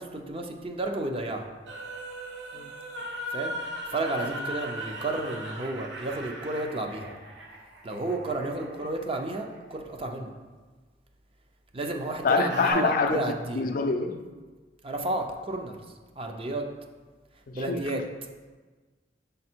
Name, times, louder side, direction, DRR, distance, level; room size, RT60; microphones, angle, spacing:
voice 1, 0.0-1.5 3.0-7.1 7.8-10.3 11.7-13.7 14.8-15.8 16.2-16.7 17.5-18.0, right 2 dB, 30° right, 3 dB, 0.6 m, -32 dB
sound 1, 1.7-9.6 12.5-12.7, equal, 85° right, 1.0 m, -38 dB
voice 2, 12.2-13.2 13.6-14.1 17.5-17.8, left 4 dB, 50° left, 6 dB, 0.4 m, -25 dB
5.3 x 4.2 x 4.4 m, 1.4 s
head